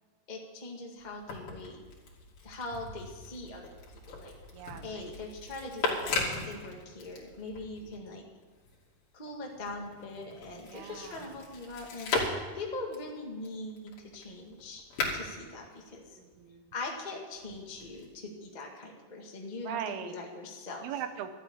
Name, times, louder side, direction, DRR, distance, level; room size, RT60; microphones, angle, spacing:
voice 1, 0.3-1.8 2.4-3.7 4.1-4.3 4.8-8.2 9.1-14.8 15.1-16.2 16.7-20.9, left 2 dB, 80° left, 0 dB, 0.4 m, -41 dB
sound 1, 1.0-8.0 8.4-16.5 17.3-18.1, left 3 dB, 60° left, 4.2 m, -38 dB
voice 2, 4.5-5.1 7.6-7.7 10.5-11.4 15.1-15.6 16.1-16.6 19.6-20.1 20.8-21.3, right 9 dB, 75° right, 9 dB, 2.9 m, -41 dB
13.5 x 8.3 x 9.7 m, 1.4 s
omnidirectional pair, 4.7 m